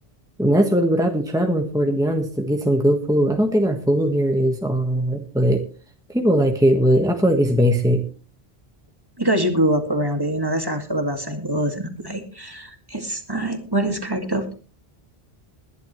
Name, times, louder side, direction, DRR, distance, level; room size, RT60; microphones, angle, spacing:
voice 1, 0.4-5.6 6.1-8.0, equal, 5° right, 3 dB, 1.4 m, -19 dB
voice 2, 9.2-14.5, right 1 dB, 20° right, 5 dB, 2.2 m, -24 dB
21.5 x 11.0 x 3.2 m, 0.36 s
omnidirectional pair, 1.1 m